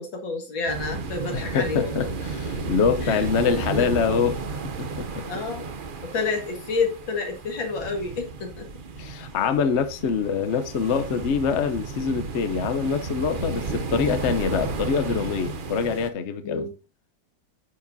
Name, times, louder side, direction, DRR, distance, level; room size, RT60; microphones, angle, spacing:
voice 1, 0.0-2.1 3.0-3.3 3.6-3.9 5.3-5.7 6.0-8.7 16.4-16.7, left 4 dB, 75° left, 2.7 m, -29 dB
sound 1, 0.7-16.1, right 4 dB, 55° right, 0.5 m, -33 dB
voice 2, 1.3-4.4 4.8-5.2 9.0-16.7, left 6 dB, 50° left, 0.9 m, -25 dB
10.0 x 7.2 x 2.7 m
omnidirectional pair, 2.1 m